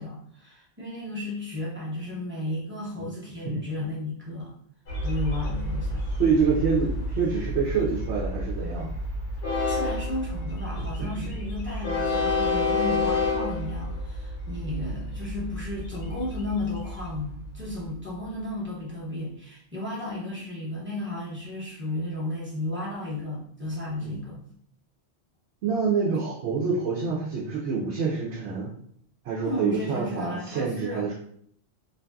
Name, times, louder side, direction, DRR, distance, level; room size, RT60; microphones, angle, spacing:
voice 1, 0.0-4.5 5.0-6.1 9.7-24.4 29.4-31.1, left 1 dB, 10° right, -6 dB, 0.7 m, -34 dB
Train, 4.9-17.9, left 2 dB, 80° left, 1.0 m, -30 dB
voice 2, 6.2-9.0 10.8-11.3 24.0-24.1 25.6-28.7 29.2-31.1, right 5 dB, 80° right, -5 dB, 0.9 m, -27 dB
2.6 x 2.5 x 2.3 m, 0.65 s
omnidirectional pair, 1.2 m